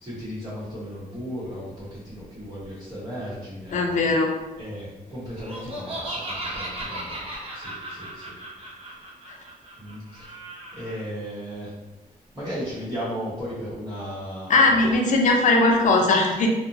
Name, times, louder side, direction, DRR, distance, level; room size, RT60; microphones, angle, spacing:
voice 1, 0.0-4.0 4.6-7.2 7.5-8.2 9.8-10.0 10.7-11.7 12.3-14.8, equal, 25° right, -13 dB, 0.9 m, -35 dB
voice 2, 3.7-4.3 14.5-16.5, left 3 dB, 55° left, 0 dB, 0.5 m, -19 dB
Laughter, 5.4-11.0, right 1 dB, 40° right, 0.6 m, -36 dB
2.8 x 2.1 x 2.5 m, 1.1 s
wide cardioid pair, 140°, 15 cm